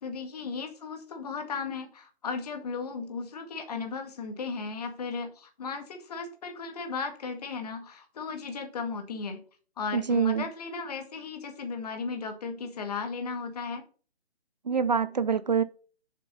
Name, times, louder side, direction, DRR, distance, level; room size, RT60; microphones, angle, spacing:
voice 1, 0.0-9.4 9.8-13.9, left 4 dB, 35° left, 1.9 m, -36 dB
voice 2, 9.9-10.5 14.7-15.6, right 6 dB, 40° right, 0.6 m, -25 dB
7.5 x 6.6 x 5.3 m
figure-of-eight pair, 150°, 33 cm